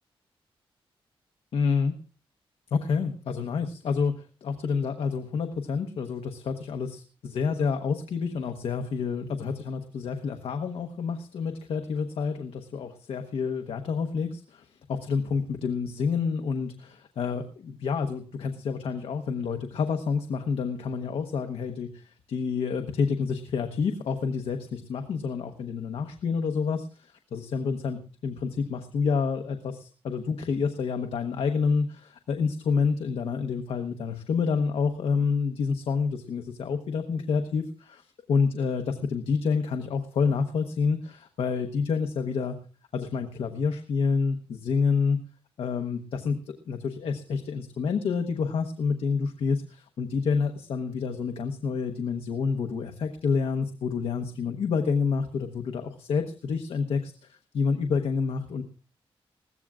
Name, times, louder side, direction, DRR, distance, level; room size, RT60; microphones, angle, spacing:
voice 1, 1.5-1.9 2.7-38.0 38.3-42.6 42.9-45.2 45.6-46.4 46.7-58.6, left 5 dB, 80° left, 5 dB, 1.0 m, -28 dB
20.5 x 15.0 x 2.4 m, 0.37 s
wide cardioid pair, 155°, 10 cm